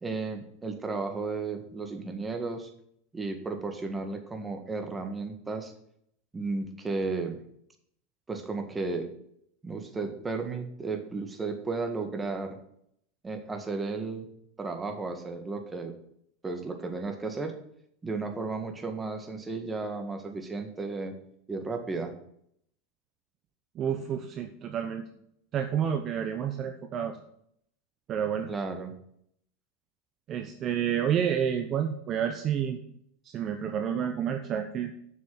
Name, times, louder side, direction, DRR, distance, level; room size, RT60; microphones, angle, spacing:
voice 1, 0.0-2.7 3.1-5.7 6.3-7.4 8.3-9.1 9.6-12.6 13.2-14.3 14.6-15.9 16.4-17.5 18.0-21.1 21.5-22.1 28.5-28.9, right 3 dB, 15° right, 6 dB, 1.7 m, -34 dB
voice 2, 23.8-25.1 25.5-27.2 28.1-28.5 30.3-32.8 33.3-34.9, right 8 dB, 40° right, 6 dB, 0.9 m, -29 dB
7.7 x 6.1 x 7.7 m, 0.71 s
hypercardioid pair, 105°, 0 cm